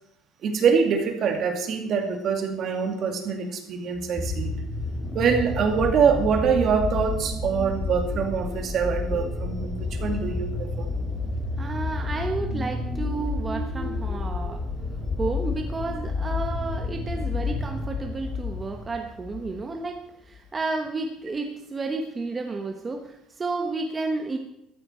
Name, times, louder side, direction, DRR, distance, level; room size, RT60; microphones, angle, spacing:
voice 1, 0.4-4.6 5.1-10.9, right 6 dB, 50° right, 5 dB, 2.3 m, -24 dB
sound 1, 4.0-19.5 20.4-20.5, left 3 dB, 20° left, 2.8 m, -30 dB
voice 2, 11.6-14.7 15.2-24.4, right 3 dB, 20° right, 4 dB, 1.1 m, -31 dB
14.0 x 13.0 x 4.4 m, 0.79 s
cardioid pair, 135°, 0 cm